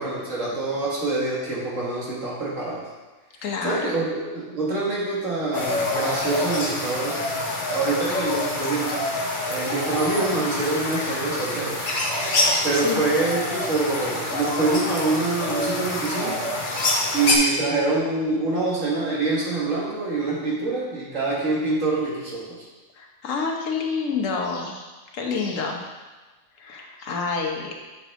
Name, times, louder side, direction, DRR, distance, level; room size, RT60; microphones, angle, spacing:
voice 1, 0.0-2.9 3.6-7.2 7.7-9.0 9.5-11.9 12.6-16.4 17.1-22.6, right 3 dB, 75° right, -5 dB, 2.1 m, -25 dB
voice 2, 3.4-3.9 12.7-13.0 22.9-25.8 26.6-27.7, left 5 dB, 80° left, 1 dB, 1.3 m, -28 dB
sound 1, 5.5-17.4, left 2 dB, 40° left, 1.1 m, -26 dB
7.9 x 5.1 x 3.7 m, 1.2 s
omnidirectional pair, 1.3 m